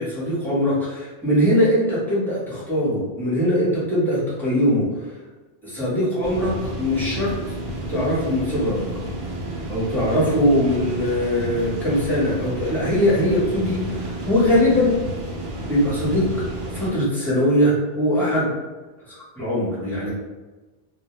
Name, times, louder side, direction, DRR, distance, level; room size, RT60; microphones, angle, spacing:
voice 1, 0.0-4.9 5.6-7.3 7.9-8.8 9.7-15.0 15.7-16.3 16.7-18.5 19.4-20.1, equal, ahead, -10 dB, 0.8 m, -21 dB
sound 1, 6.2-16.9, right 1 dB, 80° right, 0.8 m, -31 dB
2.2 x 2.0 x 2.9 m, 1.2 s
omnidirectional pair, 1.0 m